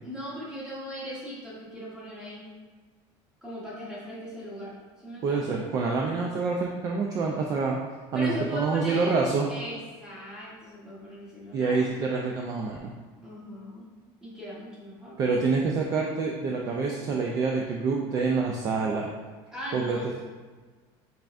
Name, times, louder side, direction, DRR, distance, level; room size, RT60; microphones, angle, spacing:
voice 1, 0.0-2.5 3.4-5.6 8.1-9.2 9.5-12.1 13.2-13.9 14.2-15.4 19.5-20.2, equal, 5° right, -7 dB, 1.1 m, -39 dB
voice 2, 5.2-7.8 8.1-9.5 11.5-12.9 15.2-19.1 19.7-20.2, right 4 dB, 30° right, -1 dB, 0.4 m, -27 dB
5.5 x 3.5 x 2.5 m, 1.4 s
cardioid pair, 170°, 11 cm